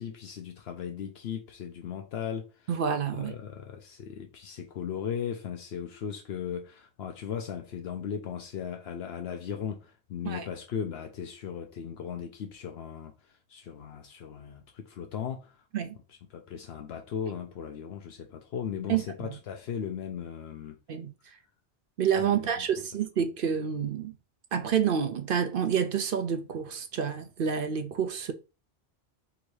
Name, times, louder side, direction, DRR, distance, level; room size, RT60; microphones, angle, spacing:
voice 1, 0.0-2.7 3.2-15.6 16.1-20.8 22.2-22.7, left 8 dB, 75° left, 0.9 m, -37 dB
voice 2, 2.7-3.3 10.2-10.5 15.7-16.0 18.9-19.0 20.9-21.1 22.0-24.1 24.5-28.3, right 7 dB, 60° right, 0.7 m, -28 dB
3.8 x 2.6 x 4.7 m
omnidirectional pair, 1.1 m